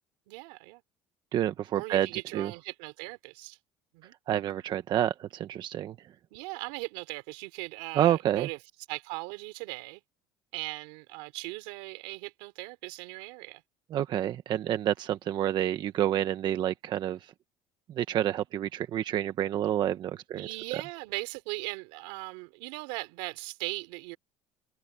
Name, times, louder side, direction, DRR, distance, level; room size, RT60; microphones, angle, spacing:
voice 1, 0.3-0.8 1.7-3.6 3.9-4.1 6.3-8.6 8.9-10.0 10.5-13.6 20.4-24.2, right 26 dB, 85° right, 3.4 m, -39 dB
voice 2, 1.3-2.1 2.3-2.5 4.3-5.9 7.9-8.5 13.9-17.3 17.9-20.5, right 11 dB, 50° right, 1.1 m, -28 dB
cardioid pair, 120°, 10 cm